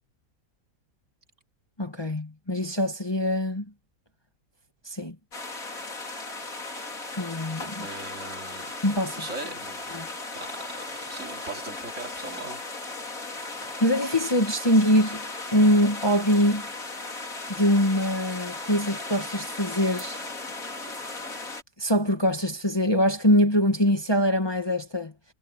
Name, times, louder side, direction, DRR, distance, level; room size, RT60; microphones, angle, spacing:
voice 1, 1.8-3.6 4.8-5.1 7.2-7.9 8.8-9.2 9.9-10.1 13.6-15.2 15.5-16.7 17.5-20.2 21.8-25.1, equal, 15° left, 1.6 m, -23 dB
sound 1, 5.3-21.6, left 3 dB, 70° left, 4.1 m, -37 dB
voice 2, 7.8-8.7 9.1-12.6, right 3 dB, 55° right, 3.5 m, -40 dB
omnidirectional pair, 1.5 m